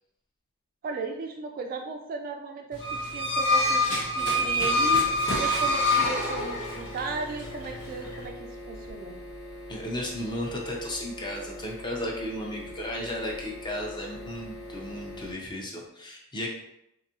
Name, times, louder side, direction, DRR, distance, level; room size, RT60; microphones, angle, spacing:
voice 1, 0.8-5.0 5.4-9.2, right 4 dB, 40° right, 4 dB, 0.3 m, -36 dB
Run, 2.7-8.3, left 1 dB, 80° left, 1.0 m, -38 dB
sound 1, 2.8-7.0, left 1 dB, 55° left, 0.7 m, -25 dB
sound 2, 4.2-15.3, left 1 dB, 5° right, 1.0 m, -42 dB
voice 2, 9.7-16.5, left 1 dB, 20° left, -1 dB, 0.6 m, -34 dB
3.9 x 2.6 x 2.8 m, 0.83 s
head